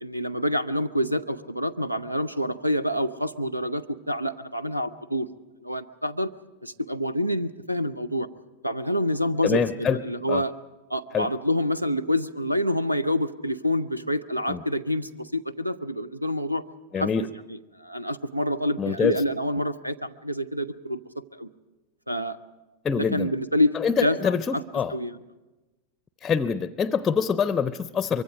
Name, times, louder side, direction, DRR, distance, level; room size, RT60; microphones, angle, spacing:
voice 1, 0.0-5.3 5.6-6.3 6.6-8.3 8.6-10.5 10.9-16.6 17.0-17.1 17.7-21.0 21.3-21.5 22.1-22.4 23.0-23.7 24.0-24.6 24.9-25.2, equal, 90° right, 15 dB, 0.7 m, -27 dB
voice 2, 9.4-10.0 10.3-10.4 11.1-11.3 14.5-14.6 16.9-17.3 18.8-19.2 22.8-23.3 23.7-25.0 26.2-28.2, left 6 dB, 20° left, 15 dB, 0.6 m, -25 dB
24.0 x 23.5 x 5.1 m, 1.1 s
figure-of-eight pair, 90°, 0 cm